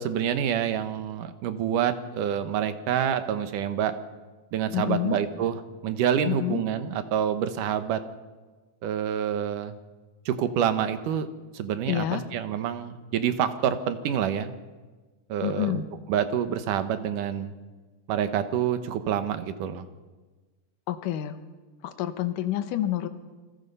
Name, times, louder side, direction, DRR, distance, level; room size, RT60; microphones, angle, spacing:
voice 1, 0.0-3.9 4.5-8.0 8.8-9.8 10.3-11.3 11.5-14.5 15.3-17.5 18.1-19.9, right 9 dB, 80° right, 10 dB, 2.8 m, -27 dB
voice 2, 4.7-5.2 6.3-6.6 11.9-12.2 15.4-15.9 20.9-21.4 21.8-23.1, left 13 dB, 80° left, 9 dB, 2.6 m, -28 dB
28.0 x 20.5 x 5.5 m, 1.3 s
omnidirectional pair, 3.7 m